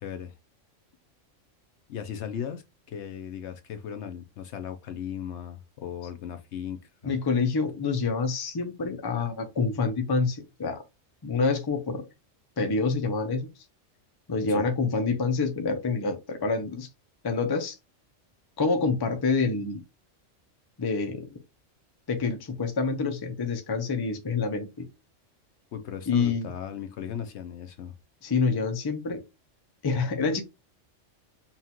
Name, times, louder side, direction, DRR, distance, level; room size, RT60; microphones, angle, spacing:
voice 1, 0.0-0.3 1.9-7.2 14.5-14.7 25.7-27.9, left 8 dB, 70° left, 0.9 m, -37 dB
voice 2, 7.0-10.8 11.2-12.1 12.6-13.5 14.3-16.9 17.2-17.8 18.6-19.8 20.8-21.3 22.1-24.9 26.1-26.5 28.2-29.2 29.8-30.4, left 4 dB, 25° left, 0.5 m, -27 dB
5.6 x 2.4 x 2.8 m
omnidirectional pair, 1.3 m